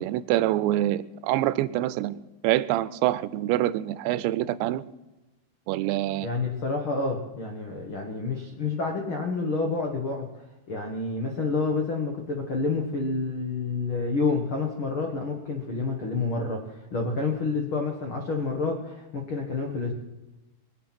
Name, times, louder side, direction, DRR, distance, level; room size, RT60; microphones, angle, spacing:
voice 1, 0.0-2.2 2.4-4.8 5.7-6.3, right 14 dB, 90° right, 16 dB, 2.9 m, -25 dB
voice 2, 6.2-19.9, left 3 dB, 80° left, 2 dB, 1.1 m, -29 dB
22.5 x 9.2 x 5.9 m, 1.1 s
omnidirectional pair, 5.0 m